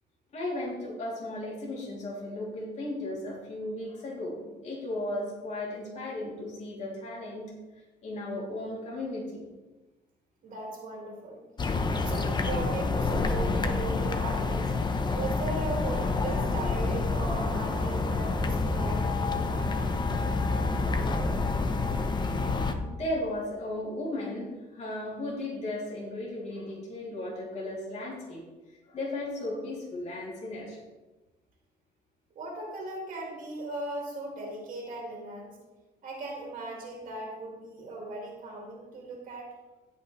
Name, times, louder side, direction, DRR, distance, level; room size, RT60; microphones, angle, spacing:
voice 1, 0.3-9.4 22.6-28.4 28.9-30.8, left 1 dB, 45° left, -5 dB, 3.1 m, -36 dB
voice 2, 10.4-11.4 11.9-14.7 15.1-19.6 32.3-35.6 36.0-39.5, right 2 dB, 50° right, -1 dB, 2.4 m, -38 dB
sound 1, 11.6-22.7, left 3 dB, 25° left, 0.9 m, -28 dB
17.0 x 5.8 x 3.3 m, 1.2 s
cardioid pair, 110°, 17 cm